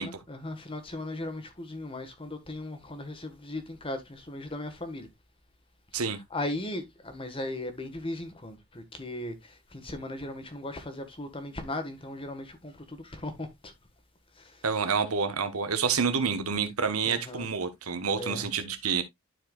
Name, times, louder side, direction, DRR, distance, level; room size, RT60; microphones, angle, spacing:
voice 1, 0.0-5.1 5.9-13.7 14.3-14.7 17.0-17.5 18.1-18.5, left 1 dB, 25° left, 1.5 m, -38 dB
voice 2, 14.6-19.0, right 5 dB, 85° right, 1.3 m, -28 dB
12.5 x 4.6 x 2.3 m
head